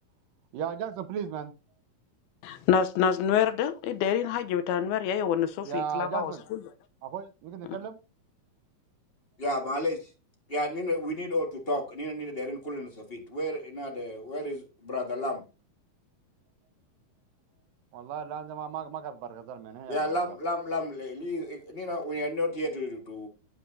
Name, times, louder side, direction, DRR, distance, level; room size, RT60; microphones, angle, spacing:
voice 1, 0.5-1.5 5.6-6.4 7.0-8.0 17.9-20.4, right 8 dB, 75° right, 2.6 m, -36 dB
voice 2, 2.4-6.6 7.6-7.8, left 8 dB, 85° left, 2.8 m, -27 dB
voice 3, 9.4-10.0 10.5-15.4 19.9-23.3, left 1 dB, 30° left, 1.0 m, -32 dB
11.5 x 8.3 x 2.8 m
omnidirectional pair, 4.3 m